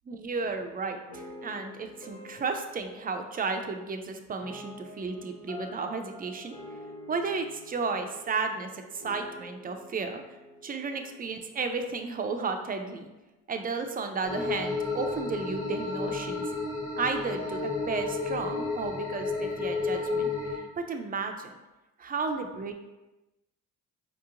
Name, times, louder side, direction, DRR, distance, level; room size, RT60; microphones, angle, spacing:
voice 1, 0.1-6.6 7.1-10.2 10.6-13.1 13.5-16.4 17.0-17.6 17.9-20.3 20.8-21.5 22.0-22.7, right 4 dB, 30° right, 5 dB, 0.4 m, -33 dB
sound 1, 1.1-12.2, left 1 dB, 70° left, 0.8 m, -48 dB
sound 2, 14.2-20.6, left 4 dB, 25° left, 1.1 m, -32 dB
4.5 x 2.8 x 2.5 m, 1.0 s
cardioid pair, 90°, 30 cm